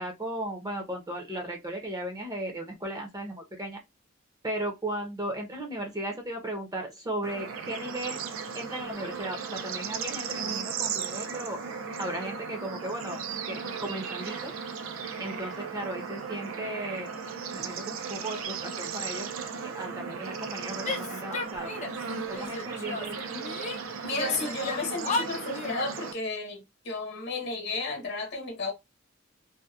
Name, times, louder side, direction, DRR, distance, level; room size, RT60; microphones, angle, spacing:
voice 1, 0.0-3.8 4.4-8.2 8.5-11.6 12.0-13.2 13.5-14.5 15.2-17.1 17.5-19.3 19.7-21.7 22.3-23.2, right 1 dB, 20° right, 0.6 m, -36 dB
Bird / Insect / Frog, 7.2-26.1, right 6 dB, 80° right, 0.4 m, -36 dB
Female speech woman speaking / Yell, 20.8-22.0 22.3-23.8 24.1-26.0, left 3 dB, 35° left, 0.4 m, -34 dB
voice 2, 24.0-28.7, left 3 dB, 55° left, 0.9 m, -33 dB
2.7 x 2.2 x 2.3 m
head